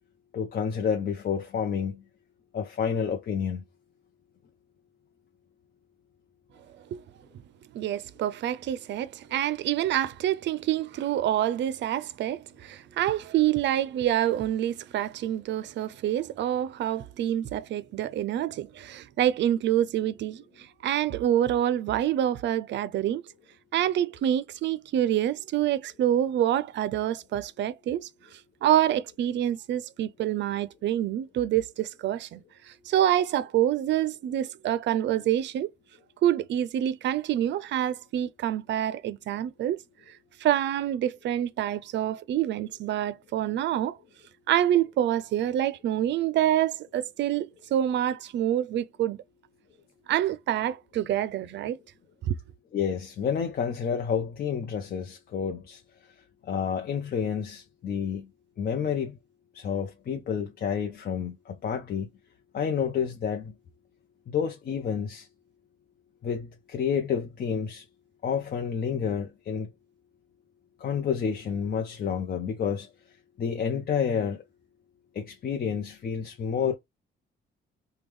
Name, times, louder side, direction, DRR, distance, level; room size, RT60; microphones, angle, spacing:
voice 1, 0.3-2.0 2.5-3.6 52.7-58.3 58.6-59.2 59.5-62.1 62.5-63.5 64.3-65.3 66.2-67.8 68.2-69.7 70.8-74.4 75.1-76.7, left 7 dB, 50° left, 0.6 m, -29 dB
voice 2, 7.7-23.2 23.7-28.1 28.6-32.4 32.7-35.7 36.2-39.8 40.4-44.0 44.5-49.2 50.1-51.8 52.2-52.4, right 11 dB, 65° right, 0.4 m, -27 dB
3.4 x 2.2 x 3.1 m
cardioid pair, 90°, 20 cm